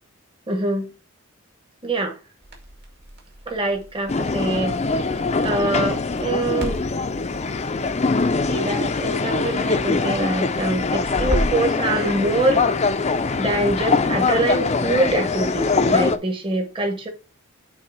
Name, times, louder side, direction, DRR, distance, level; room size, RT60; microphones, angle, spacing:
voice 1, 0.5-0.9 1.8-2.2 3.5-6.8 8.3-12.6 13.3-17.1, right 2 dB, 25° right, 1.2 m, -24 dB
Crackle, 2.4-11.7, equal, 50° right, 2.1 m, -34 dB
sound 1, 4.1-16.2, left 4 dB, 30° left, 0.5 m, -23 dB
8.3 x 3.4 x 4.7 m
head